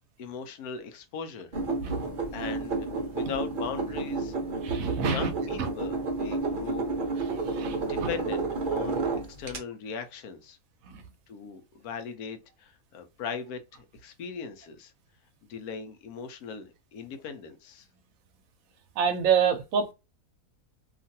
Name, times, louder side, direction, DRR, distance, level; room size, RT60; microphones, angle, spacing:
voice 1, 0.2-1.5 2.3-4.3 5.0-7.2 7.9-9.1 9.4-10.6 11.3-14.9 15.5-17.9, left 6 dB, 80° left, 1.1 m, -39 dB
sound 1, 1.5-9.6, right 3 dB, 45° right, 0.7 m, -31 dB
voice 2, 4.6-5.3 5.6-5.7 7.5-8.1 10.8-11.0 19.0-19.9, right 7 dB, 70° right, 1.0 m, -27 dB
2.9 x 2.5 x 2.7 m
omnidirectional pair, 1.6 m